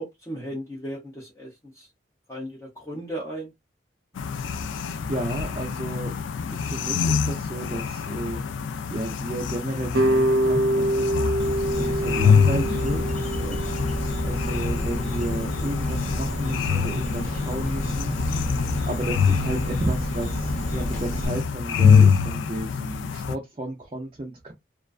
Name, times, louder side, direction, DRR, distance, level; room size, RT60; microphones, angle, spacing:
voice 1, 0.0-1.9 2.3-3.5, right 1 dB, 15° left, 0.5 m, -36 dB
sound 1, 4.2-23.4, left 6 dB, 85° left, 0.3 m, -25 dB
voice 2, 4.7-6.1 6.5-8.4 8.9-11.3 11.7-13.6 14.2-18.1 18.8-24.5, right 1 dB, 30° right, 0.4 m, -33 dB
sound 2, 9.9-15.0, right 1 dB, 90° right, 0.7 m, -25 dB
Insect, 11.4-21.3, equal, 40° left, 0.8 m, -30 dB
2.4 x 2.2 x 2.3 m
head